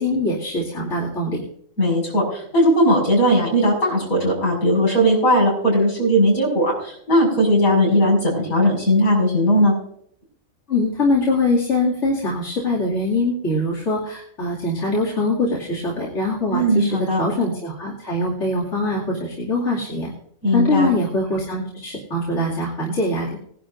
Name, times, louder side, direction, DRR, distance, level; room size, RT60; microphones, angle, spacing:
voice 1, 0.0-1.4 10.7-16.9 17.2-20.1 20.5-23.3, left 2 dB, 55° left, -6 dB, 2.8 m, -23 dB
voice 2, 1.8-9.8 16.5-17.2 20.4-20.9, equal, 85° left, -2 dB, 6.5 m, -18 dB
20.5 x 11.0 x 2.6 m, 0.67 s
omnidirectional pair, 1.5 m